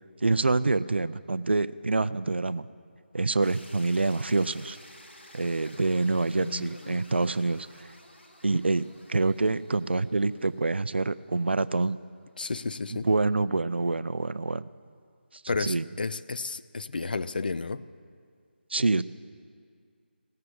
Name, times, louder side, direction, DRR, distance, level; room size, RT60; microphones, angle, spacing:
voice 1, 0.2-2.7 3.1-4.8 5.3-7.9 8.4-12.0 12.9-14.7 15.6-15.9 18.7-19.0, right 3 dB, 70° right, 16 dB, 0.4 m, -26 dB
sound 1, 3.4-11.4, left 1 dB, 75° left, 1.5 m, -53 dB
voice 2, 6.4-7.0 12.4-13.1 15.5-17.8, left 4 dB, 50° left, 14 dB, 0.4 m, -32 dB
17.0 x 6.8 x 7.6 m, 2.2 s
figure-of-eight pair, 155°, 6 cm